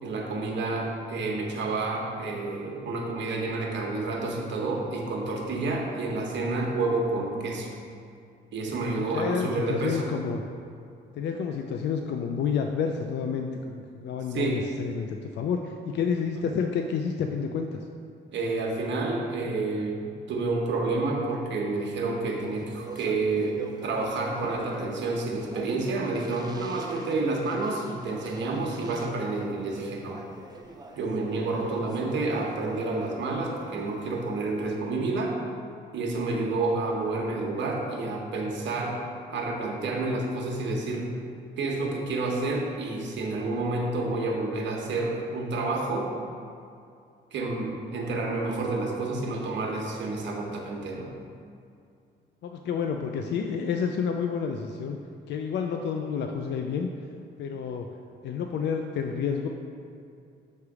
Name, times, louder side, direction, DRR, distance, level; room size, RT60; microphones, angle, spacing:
voice 1, 0.0-7.7 8.5-10.1 14.3-14.6 18.3-30.2 31.0-35.4 35.9-39.0 39.3-41.1 41.6-46.1 47.3-51.1, right 3 dB, 65° right, 0 dB, 1.1 m, -29 dB
voice 2, 9.1-10.4 11.1-17.8 52.4-55.0 55.3-56.9 57.4-57.9 58.2-59.5, left 6 dB, 60° left, 4 dB, 0.4 m, -29 dB
Speech, 22.3-34.7, right 3 dB, 20° right, 0.6 m, -45 dB
6.7 x 3.3 x 4.8 m, 2.5 s
cardioid pair, 90°, 20 cm